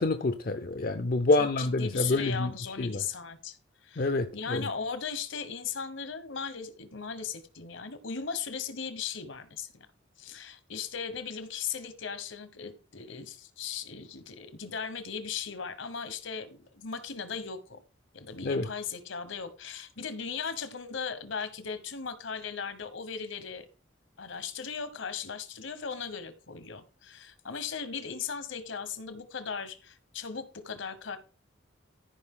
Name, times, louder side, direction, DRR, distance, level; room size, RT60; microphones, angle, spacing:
voice 1, 0.0-2.5 2.8-3.0 4.0-4.7 18.4-18.7, left 2 dB, 45° left, 0.5 m, -27 dB
voice 2, 1.4-9.9 10.2-17.8 18.1-23.7 24.2-31.2, left 6 dB, 70° left, 1.1 m, -37 dB
14.0 x 5.1 x 3.7 m
head